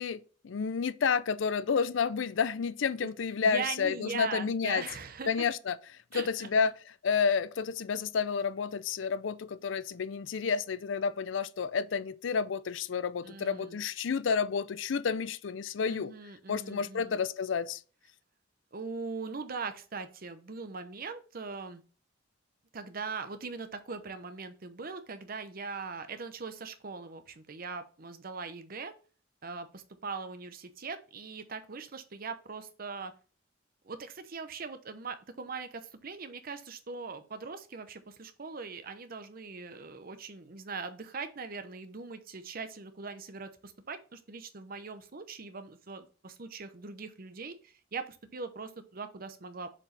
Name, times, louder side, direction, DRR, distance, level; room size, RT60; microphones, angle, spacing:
voice 1, 0.0-4.8 5.3-5.8 6.1-6.7 7.0-16.1 16.5-17.8, left 6 dB, 75° left, 0.5 m, -30 dB
voice 2, 3.4-5.5 6.1-6.5 13.2-13.8 15.9-17.2 18.7-21.8 22.7-28.9 29.4-33.1 33.8-49.7, right 4 dB, 50° right, 0.8 m, -41 dB
7.1 x 4.7 x 3.3 m
head